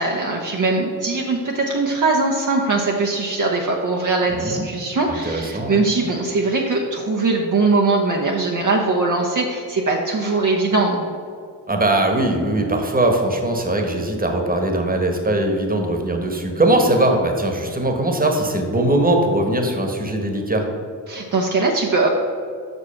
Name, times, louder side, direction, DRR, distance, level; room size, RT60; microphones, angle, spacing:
voice 1, 0.0-11.1 21.1-22.1, right 3 dB, 45° right, 0 dB, 0.9 m, -21 dB
voice 2, 4.3-4.6 5.1-5.8 11.7-20.6, right 1 dB, 20° right, 3 dB, 1.3 m, -20 dB
6.0 x 5.4 x 5.8 m, 2.4 s
supercardioid pair, 50°, 43 cm